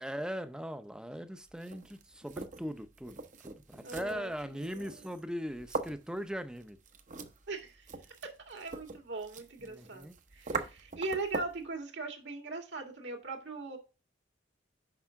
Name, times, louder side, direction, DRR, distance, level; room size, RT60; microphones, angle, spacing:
voice 1, 0.0-6.8 9.6-10.2, equal, 5° right, 0.6 m, -40 dB
sound 1, 1.5-11.7, right 4 dB, 45° right, 0.8 m, -43 dB
voice 2, 3.8-5.0 7.5-7.9 8.5-13.8, right 3 dB, 70° right, 2.1 m, -40 dB
6.0 x 5.5 x 5.7 m
head